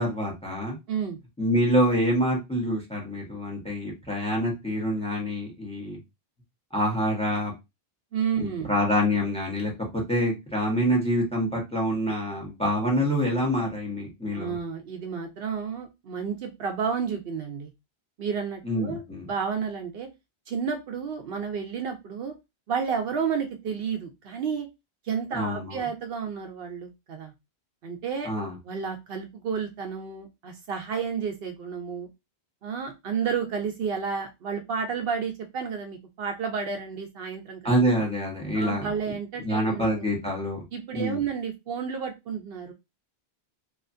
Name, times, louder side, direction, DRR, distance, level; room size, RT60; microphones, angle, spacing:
voice 1, 0.0-0.7 1.4-6.0 6.7-7.5 8.4-14.5 18.6-19.3 25.3-25.8 28.2-28.5 37.6-38.9 39.4-40.6 40.9-41.2, equal, 5° left, -1 dB, 0.9 m, -26 dB
voice 2, 0.9-1.2 8.1-8.7 14.3-17.7 18.2-19.0 19.3-20.1 20.5-22.3 22.7-24.7 25.0-27.3 27.8-28.3 28.6-32.1 32.6-37.7 38.5-40.1 40.7-42.7, right 6 dB, 70° right, 5 dB, 0.7 m, -31 dB
2.9 x 2.4 x 2.5 m, 0.23 s
omnidirectional pair, 1.1 m